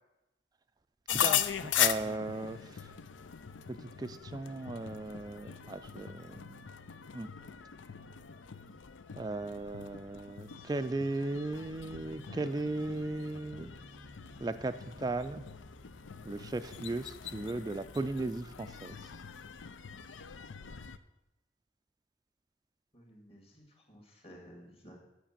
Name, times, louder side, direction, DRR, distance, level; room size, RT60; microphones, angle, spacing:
sound 1, 1.1-21.0, left 10 dB, 85° left, 0.5 m, -39 dB
voice 1, 1.1-2.6 3.7-6.6 7.1-7.3 9.1-13.7 14.4-15.4 16.2-19.0, right 2 dB, 20° right, 9 dB, 0.3 m, -37 dB
sound 2, 12.3-13.2, left 1 dB, 60° left, 1.5 m, -55 dB
sound 3, 13.3-20.5, equal, 5° right, 0.7 m, -56 dB
voice 2, 22.9-25.0, equal, 30° left, 1 dB, 2.0 m, -54 dB
10.0 x 5.9 x 7.3 m, 0.95 s
head